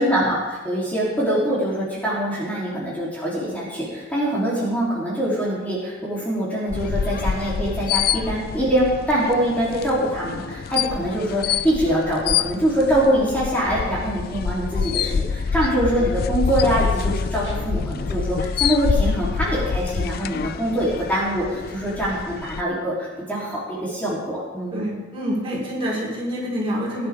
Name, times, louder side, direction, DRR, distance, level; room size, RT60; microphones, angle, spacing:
voice 1, 0.0-24.9, equal, 10° left, -9 dB, 3.6 m, -24 dB
sound 1, 6.7-22.6, left 6 dB, 50° left, 0.3 m, -26 dB
Guitar, 17.4-18.6, right 1 dB, 70° left, 2.2 m, -41 dB
voice 2, 24.7-27.1, equal, 30° right, -5 dB, 5.0 m, -27 dB
20.0 x 11.0 x 3.7 m, 1.2 s
head